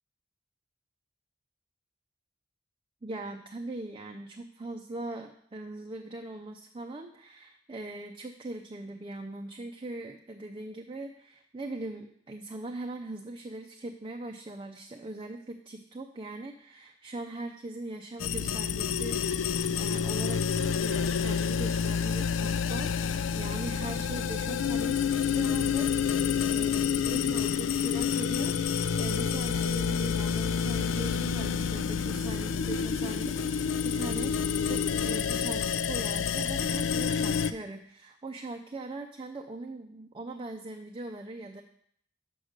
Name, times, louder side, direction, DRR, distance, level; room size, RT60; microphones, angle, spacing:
voice 1, 3.0-25.9 26.5-41.6, right 2 dB, 25° right, 3 dB, 0.5 m, -41 dB
sound 1, 18.2-37.5, left 7 dB, 90° left, 0.4 m, -28 dB
6.2 x 5.1 x 6.4 m, 0.66 s
head